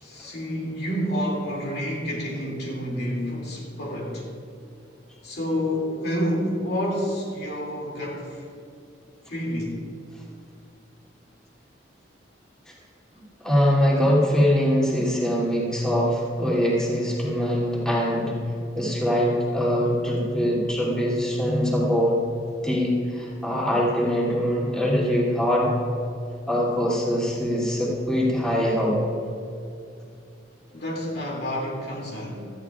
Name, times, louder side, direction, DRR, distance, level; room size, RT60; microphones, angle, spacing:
voice 1, 0.0-4.3 5.2-8.5 9.3-9.8 30.7-32.5, equal, 60° left, -2 dB, 2.4 m, -29 dB
voice 2, 13.4-18.3 18.7-22.2 22.6-25.7 26.5-29.0, equal, 5° left, -6 dB, 2.6 m, -23 dB
17.0 x 13.5 x 2.4 m, 2.5 s
head